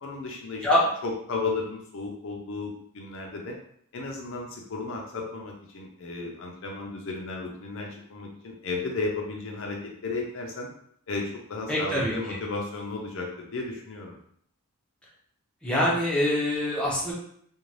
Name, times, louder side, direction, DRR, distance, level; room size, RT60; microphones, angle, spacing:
voice 1, 0.0-0.7 1.0-3.5 3.9-10.7 11.1-14.2, left 3 dB, 60° left, 0 dB, 0.5 m, -34 dB
voice 2, 11.7-12.4 15.6-17.1, left 1 dB, 5° left, -6 dB, 0.6 m, -25 dB
2.5 x 2.2 x 3.1 m, 0.65 s
head